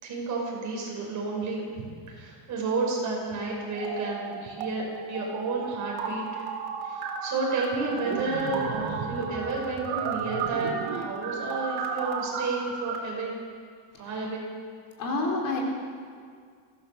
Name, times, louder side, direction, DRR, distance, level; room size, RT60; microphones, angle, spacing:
voice 1, 0.0-6.4 6.8-13.3 14.0-14.4, right 3 dB, 40° right, -1 dB, 6.0 m, -31 dB
sound 1, 3.7-4.7 4.9-13.0, right 6 dB, 75° right, 3.6 m, -33 dB
voice 2, 13.9-14.3 15.0-15.6, left 2 dB, 45° left, -1 dB, 4.4 m, -30 dB
23.5 x 17.0 x 6.9 m, 2.1 s
cardioid pair, 180°, 47 cm